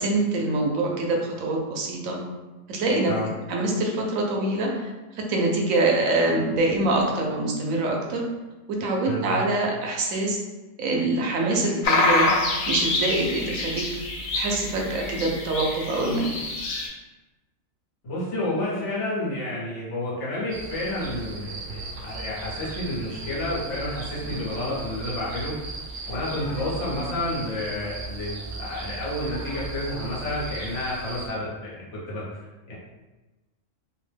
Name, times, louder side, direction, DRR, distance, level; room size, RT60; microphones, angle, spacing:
voice 1, 0.0-2.2 2.7-3.1 3.5-4.7 5.1-8.2 8.8-10.4 10.8-12.3 12.7-13.8 14.3-16.3, right 2 dB, 85° right, 0 dB, 1.0 m, -24 dB
voice 2, 9.1-9.4 18.0-25.5 26.1-32.8, left 1 dB, 60° left, -7 dB, 1.2 m, -30 dB
sound 1, 11.8-16.9, left 2 dB, 80° left, 1.0 m, -26 dB
sound 2, 20.5-31.3, right 3 dB, 65° right, 0.5 m, -37 dB
2.9 x 2.1 x 3.2 m, 1.1 s
omnidirectional pair, 1.4 m